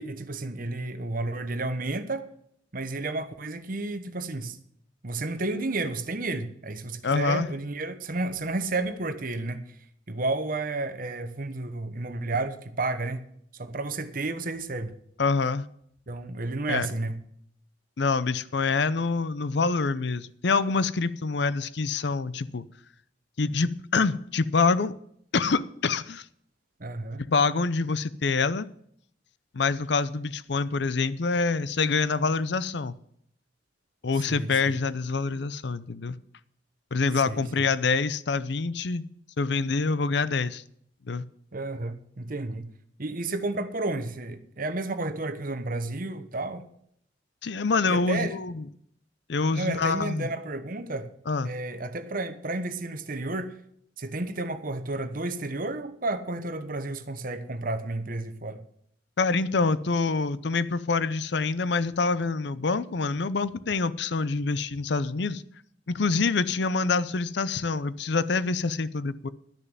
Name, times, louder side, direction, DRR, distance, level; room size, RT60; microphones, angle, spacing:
voice 1, 0.0-2.3 2.7-4.6 5.0-9.6 10.1-13.2 13.5-14.9 16.1-17.2 26.8-27.2 34.3-34.8 37.3-37.7 41.5-42.7 43.0-46.7 47.9-48.4 49.5-51.1 51.4-53.5 54.0-58.6, right 2 dB, 50° right, 1.1 m, -31 dB
voice 2, 7.0-7.5 15.2-15.6 16.7-16.9 18.0-22.6 23.4-24.9 25.3-26.2 27.2-28.7 29.5-32.9 34.0-36.2 36.9-39.0 39.4-40.6 41.1-41.2 47.4-48.7 49.3-50.3 51.3-51.5 59.2-65.4 65.9-69.3, left 4 dB, 60° left, 0.6 m, -26 dB
12.0 x 6.6 x 9.0 m
head